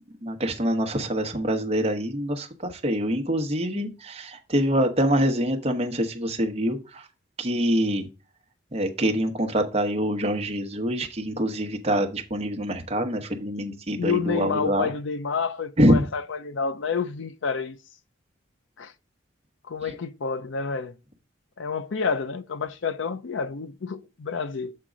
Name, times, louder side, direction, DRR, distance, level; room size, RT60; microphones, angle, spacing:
voice 1, 0.2-7.1 7.4-8.1 8.7-14.9 15.8-16.0 19.8-19.9, equal, 30° right, 1.0 m, -25 dB
voice 2, 14.0-17.8 18.8-18.9 19.7-21.0 21.6-24.7, left 5 dB, 70° left, 0.5 m, -29 dB
7.6 x 3.7 x 5.0 m
head